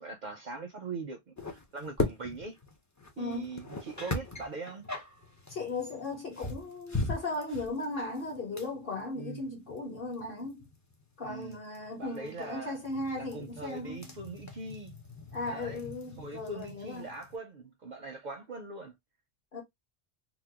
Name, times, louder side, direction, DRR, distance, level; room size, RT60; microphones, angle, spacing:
voice 1, 0.0-2.6 3.2-4.8 9.2-9.5 11.2-11.6 12.0-12.8 13.2-14.9 15.5-15.8 16.2-19.0, right 3 dB, 55° right, 0.5 m, -41 dB
sound 1, 1.4-17.4, left 2 dB, 25° left, 0.4 m, -40 dB
voice 2, 3.2-3.6 5.5-10.7 11.2-14.1 15.3-17.1 19.5-19.6, left 2 dB, 55° left, 1.4 m, -37 dB
2.8 x 2.0 x 3.4 m
omnidirectional pair, 1.1 m